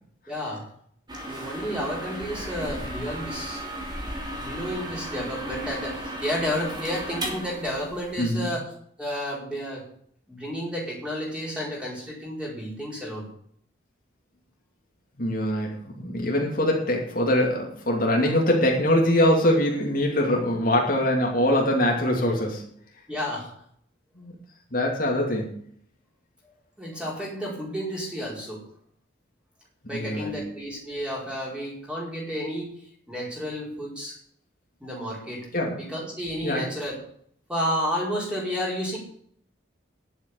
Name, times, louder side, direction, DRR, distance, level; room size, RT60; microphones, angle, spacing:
voice 1, 0.3-0.6 1.3-3.6 4.4-8.6 9.0-9.8 10.3-13.3 23.1-23.5 26.4-28.6 29.9-32.7 33.1-34.2 34.8-35.5 35.8-37.0 37.5-39.0, equal, 5° right, -4 dB, 4.9 m, -31 dB
sound 1, 1.1-8.2, right 1 dB, 25° right, 3.0 m, -35 dB
voice 2, 8.2-8.5 15.2-22.6 24.2-24.3 24.7-25.6 29.9-30.4 35.5-35.8 36.4-36.6, left 1 dB, 45° left, -1 dB, 2.7 m, -23 dB
11.0 x 8.1 x 8.5 m, 0.64 s
head